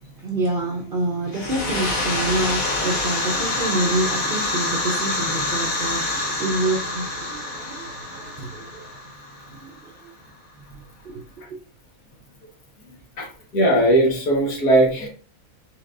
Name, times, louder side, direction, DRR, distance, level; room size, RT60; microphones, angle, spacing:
voice 1, 0.0-9.0 9.5-10.1 11.0-11.2 11.5-11.6, right 2 dB, 50° right, 0.7 m, -27 dB
sound 1, 1.3-9.8, left 2 dB, 65° left, 1.8 m, -26 dB
voice 2, 13.5-15.1, right 1 dB, 80° left, 2.0 m, -18 dB
4.9 x 4.2 x 2.5 m
omnidirectional pair, 1.6 m